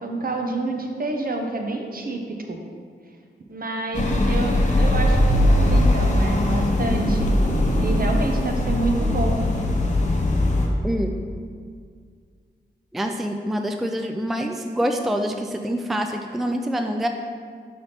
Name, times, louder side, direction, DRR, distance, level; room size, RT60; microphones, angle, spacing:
voice 1, 0.0-2.6 3.5-7.3 7.8-9.4, right 2 dB, 50° right, 2 dB, 0.8 m, -28 dB
sound 1, 3.9-10.7, left 1 dB, 40° left, 0.8 m, -20 dB
voice 2, 12.9-17.1, equal, ahead, 4 dB, 0.4 m, -26 dB
5.5 x 3.4 x 5.7 m, 2.1 s
wide cardioid pair, 70°, 19 cm